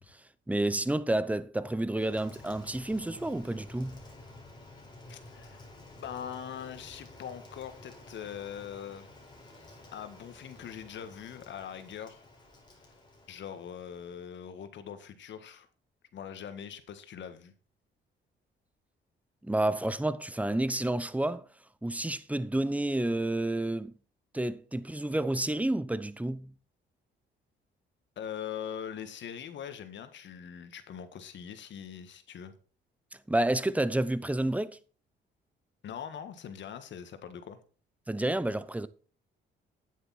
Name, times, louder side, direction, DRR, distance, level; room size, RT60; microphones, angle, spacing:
voice 1, 0.5-4.0 19.4-21.4 21.8-23.9 24.3-26.5 33.3-34.8 38.1-38.9, right 1 dB, 5° right, 0.8 m, -30 dB
Rain, 2.0-14.4, left 2 dB, 20° left, 4.1 m, -52 dB
voice 2, 5.1-5.6 6.0-9.1 9.5-12.3 12.8-12.9 13.3-15.7 16.1-17.5 28.2-32.5 35.8-37.6, left 8 dB, 65° left, 1.6 m, -42 dB
9.7 x 8.3 x 4.2 m
cardioid pair, 90°, 20 cm